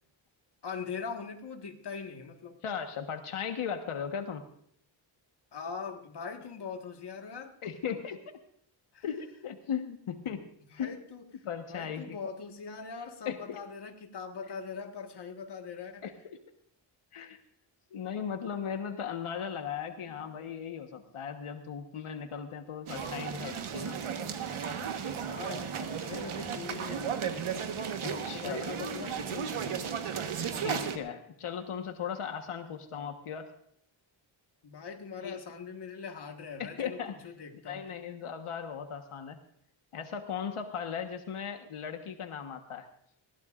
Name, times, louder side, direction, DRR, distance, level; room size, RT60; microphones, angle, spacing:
voice 1, 0.6-2.6 5.5-7.6 8.9-9.0 10.2-10.3 10.7-11.2 11.7-16.1 20.1-20.3 25.3-27.5 28.1-29.8 34.6-37.8, left 5 dB, 55° left, 4 dB, 1.7 m, -41 dB
voice 2, 2.6-4.4 7.6-8.2 9.0-10.4 10.8-10.9 11.4-12.2 13.2-13.6 16.0-16.1 17.1-17.4 17.9-24.0 24.8-25.0 28.0-28.6 30.6-33.5 35.2-35.4 36.6-37.1 37.7-39.4 39.9-42.9, left 7 dB, 90° left, 6 dB, 1.5 m, -37 dB
sound 1, 22.9-31.0, right 7 dB, 80° right, 1.5 m, -35 dB
20.5 x 15.5 x 2.5 m, 0.68 s
wide cardioid pair, 165°, 49 cm